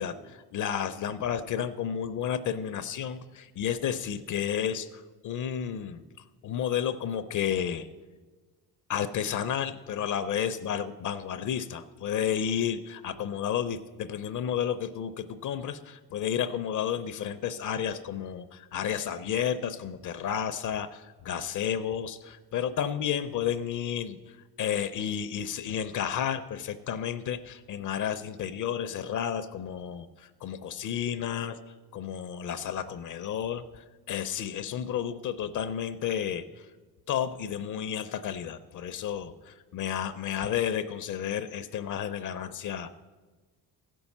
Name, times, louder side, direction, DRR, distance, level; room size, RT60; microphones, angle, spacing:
voice 1, 0.0-6.0 6.4-7.9 8.9-36.7 37.1-42.9, left 9 dB, 55° left, 11 dB, 0.5 m, -32 dB
15.5 x 5.4 x 7.1 m, 1.3 s
cardioid pair, 175°, 38 cm